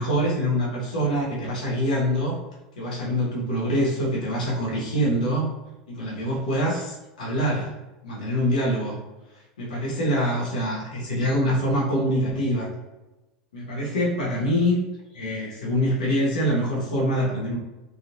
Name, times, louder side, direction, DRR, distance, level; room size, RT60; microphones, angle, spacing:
voice 1, 0.0-2.4 2.8-5.5 5.9-7.8 8.0-9.0 9.6-12.7 13.5-14.8 15.1-17.6, equal, 90° left, -5 dB, 1.2 m, -25 dB
3.6 x 2.4 x 2.9 m, 1.1 s
hypercardioid pair, 95°, 4 cm